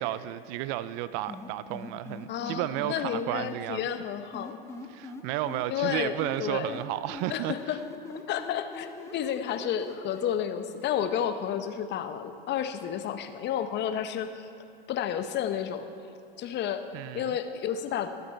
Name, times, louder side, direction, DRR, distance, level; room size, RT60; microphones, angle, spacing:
voice 1, 0.0-3.9 4.9-7.6 16.9-17.3, right 14 dB, 50° right, 0.5 m, -32 dB
sound 1, 1.3-3.6 4.3-6.4 6.7-10.3, left 3 dB, 10° left, 1.2 m, -42 dB
voice 2, 2.3-4.6 5.7-6.1 6.4-6.8 7.3-7.8 8.3-14.5 14.9-15.9 16.4-16.8 17.1-18.1, left 9 dB, 35° left, 0.9 m, -31 dB
22.5 x 8.1 x 4.4 m
hypercardioid pair, 100°, 30 cm